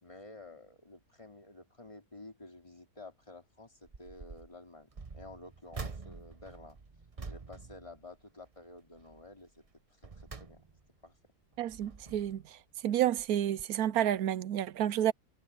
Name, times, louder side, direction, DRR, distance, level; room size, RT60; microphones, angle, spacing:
voice 1, 0.0-6.8 7.3-9.6 10.2-10.6 11.0-11.1, left 2 dB, 20° left, 3.5 m, -51 dB
sound 1, 3.8-4.5 4.9-8.6 9.0-9.3 9.8-11.0 11.5-12.5 13.2-13.3 13.6-13.7, right 4 dB, 25° right, 0.8 m, -47 dB
voice 2, 11.6-12.4 12.8-15.1, right 11 dB, 70° right, 1.0 m, -30 dB
omnidirectional pair, 1.7 m